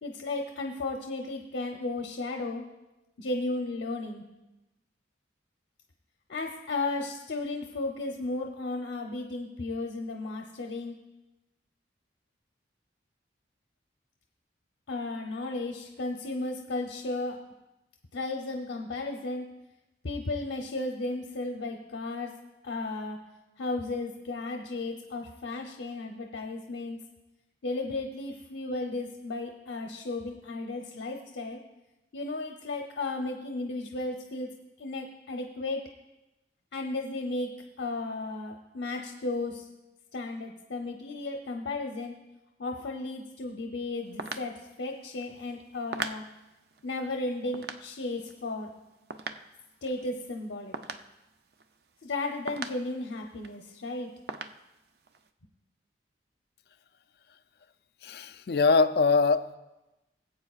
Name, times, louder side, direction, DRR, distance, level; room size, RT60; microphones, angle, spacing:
voice 1, 0.0-2.6 3.2-4.2 6.3-11.0 14.9-17.4 18.1-19.5 20.0-22.3 22.6-23.2 23.6-27.0 27.6-31.6 32.1-34.5 34.8-35.9 36.7-39.7 40.1-42.1 42.6-46.2 46.8-48.7 49.8-50.8 52.0-54.1, left 2 dB, 80° left, 2 dB, 0.8 m, -34 dB
sound 1, 44.1-52.1 52.5-53.7 53.9-54.0 54.3-55.3, right 4 dB, 60° right, 0.5 m, -41 dB
voice 2, 58.0-59.6, left 4 dB, 60° left, 11 dB, 0.4 m, -23 dB
19.0 x 8.3 x 2.4 m, 0.99 s
head